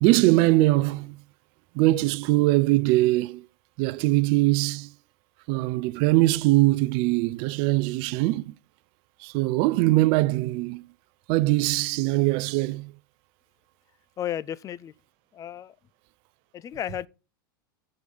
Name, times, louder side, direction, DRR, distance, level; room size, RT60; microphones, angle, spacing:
voice 1, 0.0-1.2 1.8-3.4 3.8-4.9 5.5-8.5 9.2-10.8 11.3-12.9, right 19 dB, 50° right, 0.4 m, -22 dB
voice 2, 14.2-14.9 15.3-15.8 16.5-17.1, left 10 dB, 30° left, 0.4 m, -33 dB
7.8 x 4.8 x 5.2 m
hypercardioid pair, 95°, 12 cm